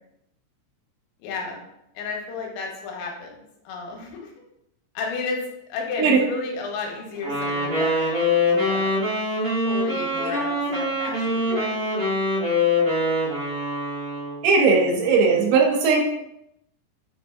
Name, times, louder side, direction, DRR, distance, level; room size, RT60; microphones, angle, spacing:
voice 1, 1.2-1.6 2.0-4.3 4.9-5.4 5.7-9.1 9.6-11.8, left 4 dB, 80° left, 0 dB, 2.7 m, -33 dB
Wind instrument woodwind instrument, 7.2-14.4, left 2 dB, 65° right, 1.4 m, -24 dB
voice 2, 14.4-16.0, right 4 dB, 90° right, 0 dB, 3.0 m, -18 dB
6.8 x 2.5 x 2.3 m, 0.82 s
omnidirectional pair, 5.0 m